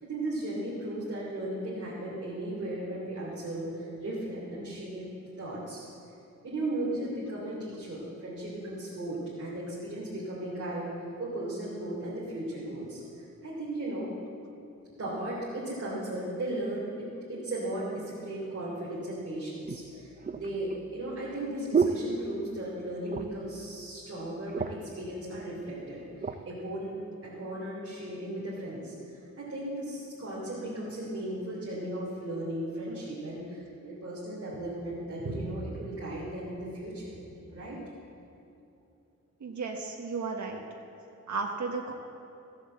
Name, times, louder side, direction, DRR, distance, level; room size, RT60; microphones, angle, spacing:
voice 1, 0.0-5.1 5.4-5.9 6.4-14.1 15.0-37.2 37.5-37.8, right 1 dB, 50° right, -7 dB, 3.1 m, -36 dB
sound 1, 18.7-18.8 19.6-22.8 23.0-23.5 23.9-24.0 24.3-25.0 25.7-26.4 27.0-27.2, right 5 dB, 30° right, 0.6 m, -32 dB
voice 2, 39.4-40.6 41.3-41.9, right 4 dB, 75° right, 0 dB, 1.3 m, -34 dB
15.5 x 8.0 x 7.5 m, 2.7 s
wide cardioid pair, 130°, 30 cm